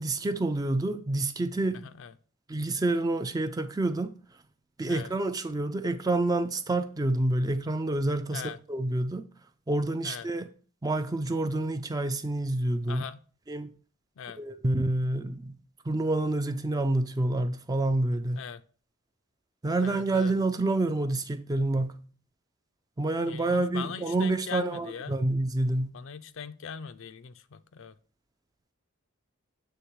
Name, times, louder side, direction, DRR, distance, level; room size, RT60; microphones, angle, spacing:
voice 1, 0.0-1.9 2.5-4.1 4.8-8.4 8.7-9.2 9.7-10.5 10.8-13.0 13.5-13.7 14.4-15.6 15.9-18.4 19.6-22.0 23.0-26.0, right 2 dB, 15° right, 0.3 m, -28 dB
voice 2, 1.8-2.1 4.9-5.1 8.3-8.6 10.0-10.3 12.9-13.2 14.2-14.4 18.3-18.6 19.8-20.3 23.2-25.1 25.9-28.0, left 6 dB, 60° left, 0.4 m, -40 dB
8.0 x 3.4 x 4.6 m
head